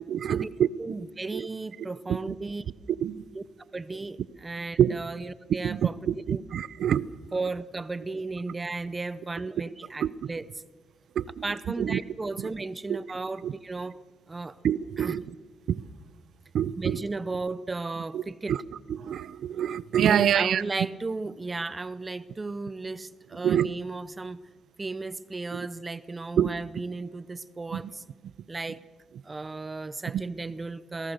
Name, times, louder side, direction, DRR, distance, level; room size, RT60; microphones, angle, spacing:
voice 1, 0.1-0.7 1.3-1.5 3.0-3.2 4.8-4.9 5.6-7.1 10.0-10.3 11.2-11.4 11.8-12.0 12.4-12.5 12.9-13.0 13.4-13.5 14.6-15.2 15.7-15.8 16.5-17.0 18.1-18.2 18.5-18.6 18.9-20.6 23.4-23.7 25.5-25.7 26.4-26.5 27.7-27.9 30.1-30.2, right 9 dB, 65° right, 0.7 m, -26 dB
voice 2, 0.8-2.6 3.3-3.4 3.7-6.0 6.3-6.4 7.3-10.5 11.4-14.0 14.3-14.6 15.0-15.1 16.8-18.6 20.0-24.4 24.8-28.0 28.5-28.8 29.2-31.1, right 3 dB, 25° right, 0.7 m, -34 dB
27.5 x 18.5 x 6.7 m
cardioid pair, 90°, 0 cm